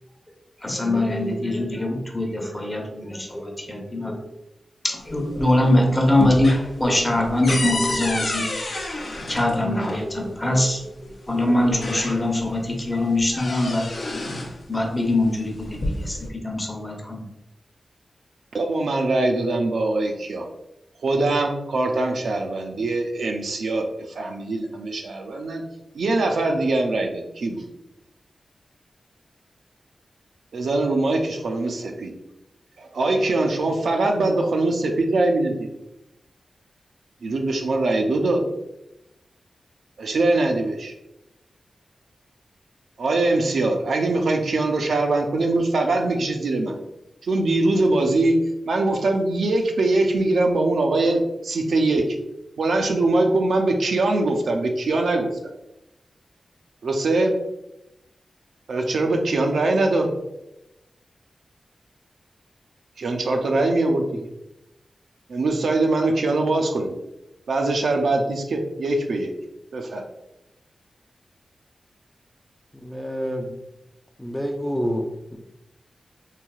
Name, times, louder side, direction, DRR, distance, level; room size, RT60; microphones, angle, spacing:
voice 1, 0.6-4.2 4.8-9.0 9.3-10.8 11.3-13.9 14.7-17.2, left 1 dB, 20° left, 1 dB, 0.7 m, -23 dB
sound 1, 5.0-5.7 6.0-10.0 11.1-11.2 11.6-12.5 12.9-14.6 15.5-16.3, left 2 dB, 70° left, 0.6 m, -29 dB
voice 2, 18.5-20.5 21.0-23.9 24.2-25.6 25.9-27.6 30.5-32.1 32.8-35.7 37.2-38.4 40.0-40.9 43.0-46.8 47.2-48.4 48.7-52.2 52.6-55.3 56.8-57.4 58.7-60.1 63.0-64.3 65.3-66.9 67.5-69.3 69.7-70.0, right 2 dB, 85° right, 3 dB, 0.4 m, -22 dB
voice 3, 72.7-73.6 74.2-75.4, equal, 5° left, 2 dB, 0.4 m, -28 dB
3.2 x 2.6 x 2.3 m, 0.89 s
cardioid pair, 60°, 0 cm